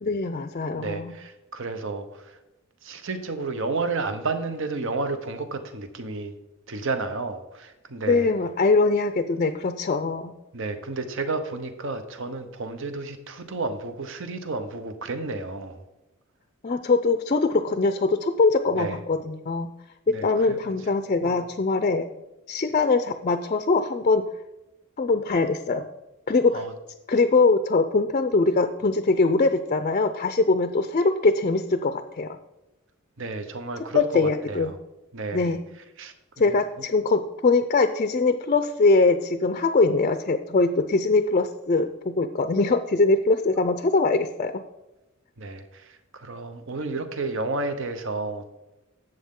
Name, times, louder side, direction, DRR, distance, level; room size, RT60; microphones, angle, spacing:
voice 1, 0.0-1.1 8.1-10.3 16.6-19.7 20.1-22.0 22.5-24.2 25.0-25.8 26.3-26.6 27.1-32.4 33.9-34.7 35.3-35.6 36.4-41.9 42.2-44.5, left 3 dB, 35° left, 9 dB, 0.5 m, -22 dB
voice 2, 0.7-2.3 2.8-6.3 6.7-8.3 10.5-15.8 18.8-19.0 20.1-20.7 21.2-21.4 26.5-26.7 33.2-34.8 35.1-35.5 36.0-36.5 45.4-48.5, right 3 dB, 65° right, 9 dB, 0.9 m, -31 dB
11.5 x 7.8 x 3.7 m, 0.97 s
head